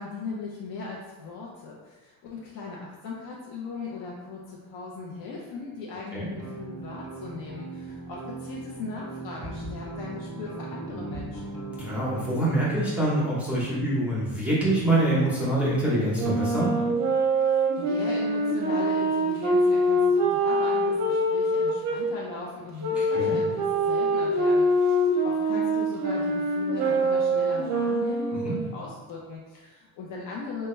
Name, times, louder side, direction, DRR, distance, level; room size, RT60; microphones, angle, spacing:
voice 1, 0.0-11.5 17.8-30.7, left 4 dB, 65° left, -3 dB, 0.6 m, -38 dB
sound 1, 6.3-12.3, right 2 dB, 50° left, 1.0 m, -38 dB
voice 2, 11.8-16.7 22.9-23.4 28.4-28.6, right 1 dB, 5° right, -9 dB, 0.6 m, -25 dB
Wind instrument woodwind instrument, 16.1-22.0 22.8-28.6, right 1 dB, 45° right, 0.6 m, -24 dB
3.3 x 2.2 x 3.0 m, 1.2 s
cardioid pair, 140°, 37 cm